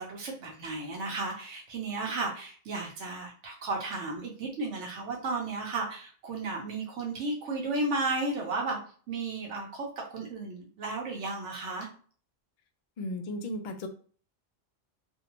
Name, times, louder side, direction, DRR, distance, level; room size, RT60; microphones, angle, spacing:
voice 1, 0.0-8.8 9.1-11.9, right 3 dB, 80° right, -2 dB, 1.0 m, -34 dB
voice 2, 13.0-13.9, left 1 dB, 65° left, 6 dB, 0.4 m, -35 dB
2.6 x 2.1 x 2.9 m, 0.43 s
omnidirectional pair, 1.2 m